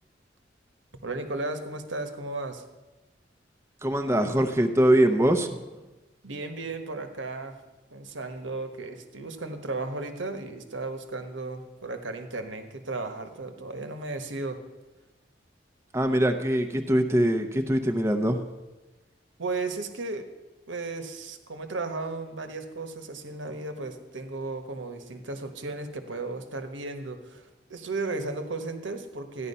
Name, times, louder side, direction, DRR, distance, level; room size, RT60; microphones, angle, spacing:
voice 1, 1.0-2.6 6.2-7.6 7.9-14.6 19.4-20.2 20.7-29.5, right 3 dB, 90° right, 7 dB, 1.3 m, -35 dB
voice 2, 3.8-5.6 15.9-18.4, right 1 dB, 15° right, 4 dB, 0.7 m, -23 dB
14.0 x 10.5 x 5.6 m, 1.1 s
head